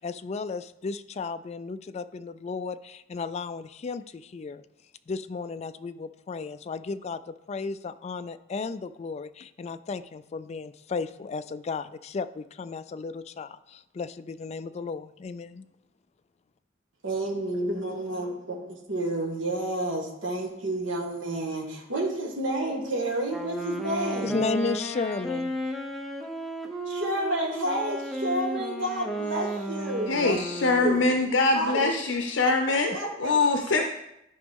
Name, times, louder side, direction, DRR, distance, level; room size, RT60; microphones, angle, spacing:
voice 1, 0.0-4.6 5.1-15.6 24.2-25.6 33.8-33.9, left 4 dB, 35° left, 12 dB, 0.3 m, -34 dB
voice 2, 17.0-24.4 26.8-31.1 31.5-32.0 32.4-32.5 32.9-33.4, right 1 dB, 85° right, -1 dB, 1.8 m, -30 dB
Wind instrument woodwind instrument, 23.2-31.1, right 1 dB, ahead, 0.8 m, -33 dB
voice 3, 30.1-32.9 33.2-33.8, left 3 dB, 75° left, 4 dB, 0.7 m, -23 dB
13.0 x 5.0 x 3.7 m, 0.86 s
head